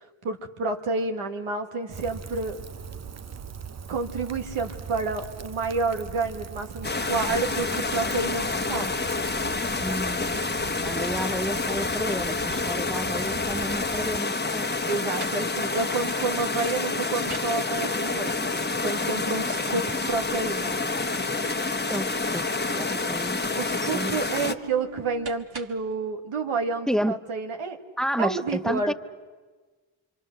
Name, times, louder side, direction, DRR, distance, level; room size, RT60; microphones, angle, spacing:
voice 1, 0.2-2.6 3.9-8.9 14.8-18.3 18.8-20.7 23.6-27.8 28.2-28.9, right 4 dB, 90° right, 4 dB, 1.9 m, -29 dB
Rain, 1.9-14.2, right 7 dB, 35° right, 0.7 m, -40 dB
sound 1, 6.8-24.5, left 3 dB, 20° left, 1.2 m, -28 dB
voice 2, 9.8-10.4 10.7-14.7 19.7-19.8 21.9-22.5 22.8-23.4 23.7-24.2 26.9-27.2 28.0-28.9, equal, ahead, 13 dB, 0.8 m, -31 dB
sound 2, 14.8-26.0, right 6 dB, 50° right, 1.8 m, -44 dB
27.0 x 25.0 x 6.6 m, 1.3 s
cardioid pair, 50°, 49 cm